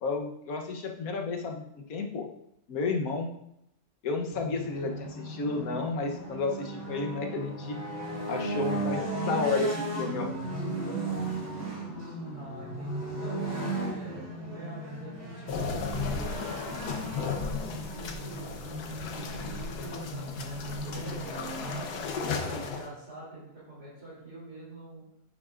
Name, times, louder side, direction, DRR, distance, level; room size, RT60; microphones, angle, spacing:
voice 1, 0.0-2.3 2.7-3.3 4.0-7.8 8.3-10.3, left 3 dB, 65° left, 3 dB, 1.4 m, -31 dB
sound 1, 4.3-21.8, right 2 dB, 35° right, 2.5 m, -36 dB
voice 2, 12.3-15.6 15.9-18.5 18.9-21.9 22.3-25.1, right 1 dB, 85° right, -10 dB, 3.9 m, -45 dB
sound 2, 15.5-22.9, left 5 dB, 80° left, 1.5 m, -35 dB
9.6 x 7.5 x 2.5 m, 0.77 s
omnidirectional pair, 1.6 m